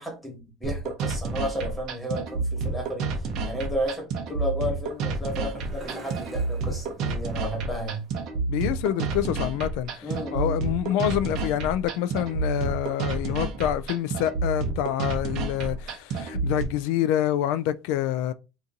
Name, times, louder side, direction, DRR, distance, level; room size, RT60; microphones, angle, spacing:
voice 1, 0.0-8.0 10.0-10.6, equal, 5° left, 1.4 m, -33 dB
sound 1, 0.6-16.6, right 4 dB, 50° right, 0.8 m, -29 dB
sound 2, 4.7-8.3, right 2 dB, 20° right, 1.1 m, -47 dB
voice 2, 8.5-18.3, left 12 dB, 75° left, 0.3 m, -27 dB
2.8 x 2.6 x 3.7 m
cardioid pair, 160°, 0 cm